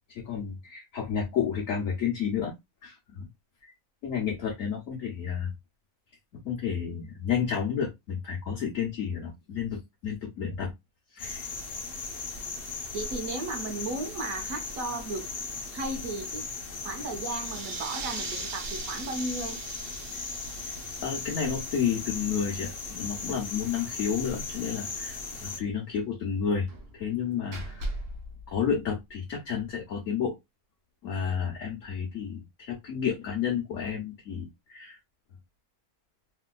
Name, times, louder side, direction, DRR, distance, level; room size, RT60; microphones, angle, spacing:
voice 1, 0.1-2.5 2.8-3.3 4.0-5.5 6.4-10.7 11.1-11.5 21.0-26.7 26.9-27.9 28.5-30.4 31.0-35.0, left 7 dB, 65° left, 1.2 m, -31 dB
sound 1, 11.2-25.6, left 4 dB, 50° left, 0.8 m, -37 dB
voice 2, 12.9-15.3 15.7-16.4 16.8-19.6 20.1-20.2, right 2 dB, 70° right, 1.2 m, -35 dB
sound 2, 17.3-22.5, right 7 dB, 85° right, 0.5 m, -42 dB
Slam, 23.7-24.1 24.3-24.4 24.8-24.9 26.7-29.3, right 1 dB, 50° right, 0.8 m, -39 dB
3.2 x 2.7 x 2.2 m
omnidirectional pair, 1.6 m